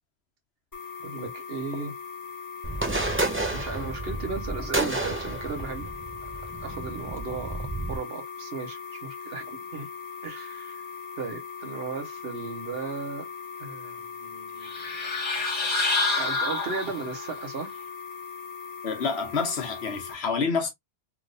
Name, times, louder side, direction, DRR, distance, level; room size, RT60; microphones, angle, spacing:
sound 1, 0.7-20.1, left 6 dB, 20° left, 1.4 m, -40 dB
voice 1, 1.0-2.0 3.1-5.9 6.6-9.9 10.2-10.9 11.2-13.3 13.6-14.8 16.1-17.7, right 4 dB, 60° right, 1.1 m, -36 dB
sound 2, 2.6-8.0, right 2 dB, 15° right, 0.5 m, -31 dB
sound 3, 14.6-17.3, left 3 dB, 45° left, 1.3 m, -27 dB
voice 2, 18.8-20.7, left 5 dB, 65° left, 1.2 m, -28 dB
3.3 x 3.0 x 2.5 m
omnidirectional pair, 1.2 m